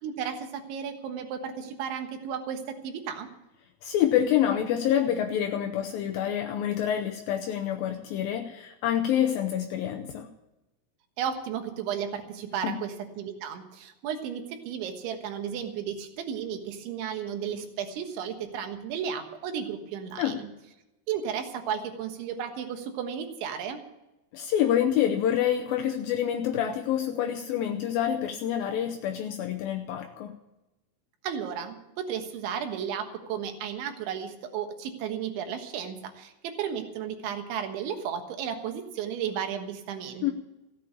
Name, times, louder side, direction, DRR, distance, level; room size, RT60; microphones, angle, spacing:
voice 1, 0.0-3.3 11.2-20.5 21.1-23.8 31.2-40.3, right 8 dB, 90° right, 5 dB, 3.8 m, -34 dB
voice 2, 3.8-10.3 12.6-12.8 20.2-20.4 24.3-30.4 40.2-40.3, left 10 dB, 80° left, 3 dB, 2.1 m, -27 dB
15.5 x 8.5 x 8.4 m, 0.97 s
omnidirectional pair, 5.2 m